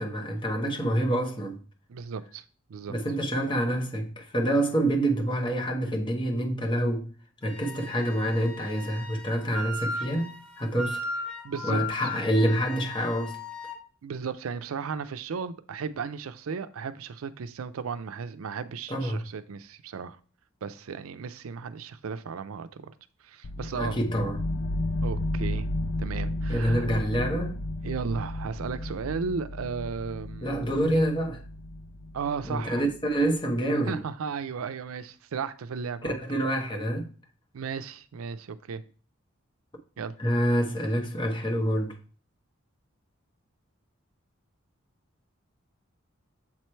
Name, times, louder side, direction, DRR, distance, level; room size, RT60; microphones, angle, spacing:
voice 1, 0.0-1.6 2.9-7.1 7.4-10.3 10.6-11.0 11.6-13.4 18.9-19.2 23.6-24.4 26.5-27.6 30.4-31.4 32.4-34.0 36.0-37.1 40.2-42.0, right 1 dB, 25° left, 0.9 m, -27 dB
voice 2, 1.9-2.4 2.7-2.9 11.4-11.8 14.0-20.2 20.6-22.9 23.2-24.0 25.0-25.7 26.0-26.9 27.8-30.8 32.1-32.8 33.9-36.2 37.5-38.8 40.0-40.1, right 5 dB, 85° right, 0.4 m, -35 dB
Wind instrument woodwind instrument, 7.4-13.8, left 2 dB, 5° left, 0.6 m, -37 dB
sound 1, 23.4-33.2, left 1 dB, 55° left, 0.4 m, -33 dB
7.3 x 3.1 x 4.4 m
head